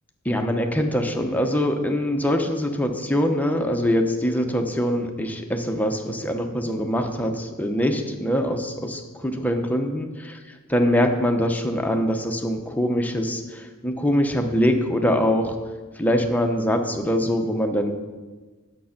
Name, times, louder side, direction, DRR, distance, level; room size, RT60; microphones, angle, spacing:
voice 1, 0.2-10.4 10.7-15.6 16.0-17.9, equal, 5° left, 4 dB, 0.8 m, -23 dB
9.1 x 6.9 x 5.8 m, 1.3 s
head